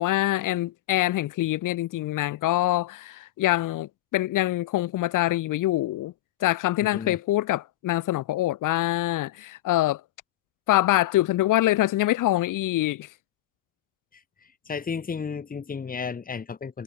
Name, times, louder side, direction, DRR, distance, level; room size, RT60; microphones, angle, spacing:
voice 1, 0.0-6.1 6.4-10.0 10.7-13.1, left 15 dB, 85° left, 2.9 m, -24 dB
voice 2, 6.8-7.2 14.7-16.8, left 5 dB, 30° left, 6.3 m, -33 dB
cardioid pair, 160°, 31 cm